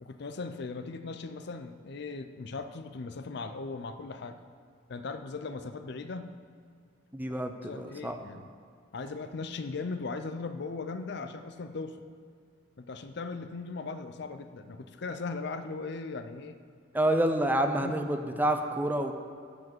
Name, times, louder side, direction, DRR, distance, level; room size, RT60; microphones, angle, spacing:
voice 1, 0.0-4.4 4.9-6.4 7.6-8.5 8.9-12.0 12.8-16.6 17.8-17.9, left 4 dB, 60° left, 9 dB, 0.5 m, -38 dB
voice 2, 7.1-8.2 16.9-19.1, right 1 dB, 10° right, 6 dB, 0.5 m, -28 dB
11.0 x 4.9 x 7.9 m, 2.3 s
head